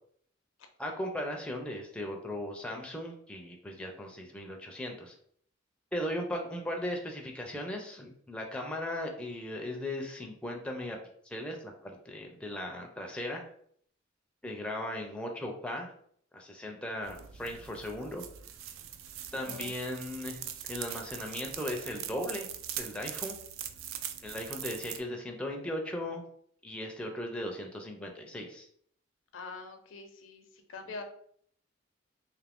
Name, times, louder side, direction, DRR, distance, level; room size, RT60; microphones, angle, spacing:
voice 1, 0.8-5.1 5.9-11.0 11.2-13.4 14.4-15.9 16.3-18.2 19.3-20.4 20.7-22.5 22.8-23.4 24.2-26.2 26.6-28.7, left 1 dB, 5° left, 1 dB, 0.4 m, -37 dB
sound 1, 17.0-25.0, right 10 dB, 80° right, 0.3 m, -42 dB
voice 2, 29.3-30.4 30.7-31.0, left 4 dB, 75° left, 6 dB, 0.5 m, -44 dB
2.6 x 2.5 x 3.4 m, 0.63 s
head